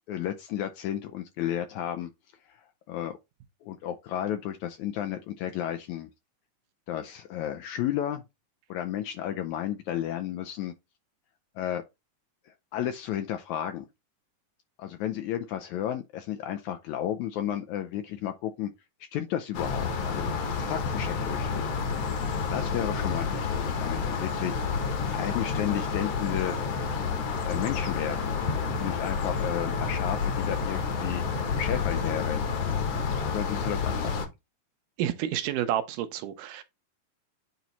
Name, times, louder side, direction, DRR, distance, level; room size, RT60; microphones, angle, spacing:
voice 1, 0.1-2.1 2.9-3.2 3.6-6.1 6.9-8.2 8.7-10.7 11.6-11.8 12.7-13.9 14.8-18.7 19.1-21.7 22.5-26.6 27.4-28.3 28.8-31.2 31.6-32.5 33.3-34.3, left 11 dB, 80° left, 1.7 m, -33 dB
sound 1, 19.5-34.3, left 5 dB, 60° left, 1.8 m, -29 dB
voice 2, 35.0-36.6, right 11 dB, 75° right, 2.1 m, -29 dB
9.1 x 3.1 x 4.0 m
omnidirectional pair, 3.9 m